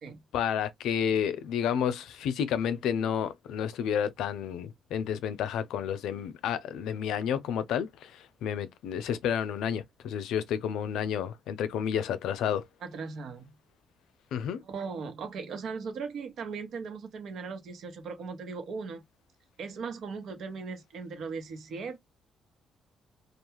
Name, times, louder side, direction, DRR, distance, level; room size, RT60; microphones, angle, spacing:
voice 1, 0.3-12.6 14.3-14.6, left 8 dB, 85° left, 0.4 m, -30 dB
voice 2, 12.8-13.5 14.6-19.0 19.6-22.0, right 5 dB, 65° right, 1.0 m, -38 dB
2.3 x 2.3 x 3.0 m
cardioid pair, 90°, 0 cm